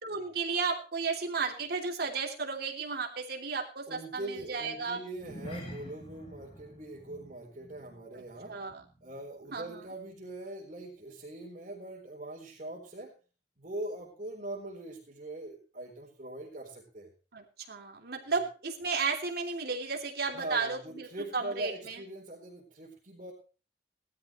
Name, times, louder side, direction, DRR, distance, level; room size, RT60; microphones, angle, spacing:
voice 1, 0.0-5.0 8.5-8.8 9.5-9.8 17.3-22.0, right 4 dB, 60° right, 1 dB, 3.1 m, -34 dB
voice 2, 3.9-8.6 9.0-13.1 13.6-17.1 20.3-23.3, right 1 dB, 40° right, -4 dB, 4.3 m, -42 dB
sound 1, 5.1-9.8 10.0-10.3 10.8-10.9, equal, 30° left, 3.0 m, -47 dB
19.0 x 13.0 x 3.2 m, 0.35 s
head